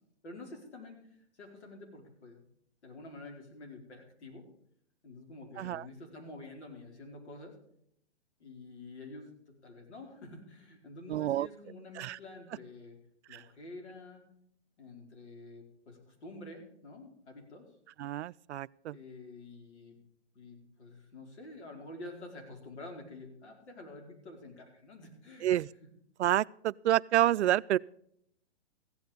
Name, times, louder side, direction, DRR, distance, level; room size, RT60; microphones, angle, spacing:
voice 1, 0.2-1.1 1.3-2.4 2.8-4.4 5.0-7.5 8.4-9.3 9.6-13.0 13.3-14.2 14.8-17.6 18.9-20.0 20.3-25.5, left 2 dB, 80° left, 4.8 m, -48 dB
voice 2, 11.1-11.5 12.0-12.2 13.3-13.4 18.0-19.0 25.4-25.7 26.2-27.8, right 13 dB, 80° right, 0.5 m, -28 dB
15.5 x 9.4 x 5.2 m
hypercardioid pair, 155°, 34 cm